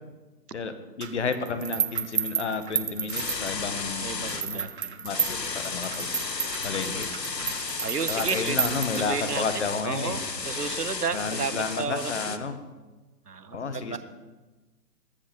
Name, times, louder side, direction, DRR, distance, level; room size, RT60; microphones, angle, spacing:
voice 1, 0.5-4.7 5.0-6.1 6.6-7.1 8.1-10.1 11.1-12.5 13.5-14.0, left 4 dB, 45° left, 10 dB, 1.5 m, -31 dB
sound 1, 1.0-3.8 4.3-9.4, right 7 dB, 40° right, 0.8 m, -32 dB
sound 2, 3.1-4.5 5.1-12.4, left 4 dB, 80° left, 1.3 m, -33 dB
voice 2, 4.0-5.0 7.4-8.6 8.9-12.5 13.3-14.0, right 5 dB, 70° right, 10 dB, 1.3 m, -33 dB
21.0 x 8.2 x 5.5 m, 1.2 s
figure-of-eight pair, 140°, 49 cm